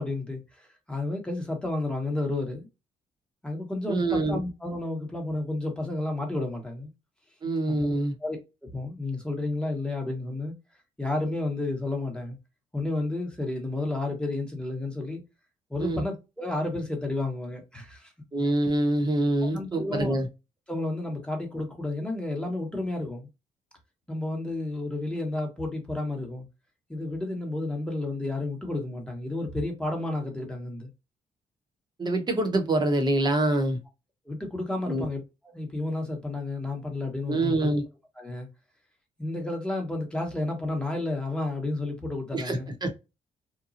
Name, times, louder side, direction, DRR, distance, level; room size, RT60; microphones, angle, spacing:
voice 1, 0.0-2.7 3.4-6.9 7.7-7.9 8.2-8.4 8.7-10.5 11.0-12.4 12.7-15.2 15.7-18.1 19.5-20.2 20.7-23.3 24.1-26.5 26.9-30.9 34.2-37.5 38.2-38.5 39.2-42.7, left 2 dB, 5° left, 1.1 m, -31 dB
voice 2, 3.9-4.4 7.4-8.1 15.8-16.0 18.3-20.3 32.0-33.8 34.8-35.1 37.3-37.8 42.3-42.9, right 2 dB, 30° right, 1.0 m, -25 dB
3.0 x 2.2 x 2.5 m
cardioid pair, 90°, 14 cm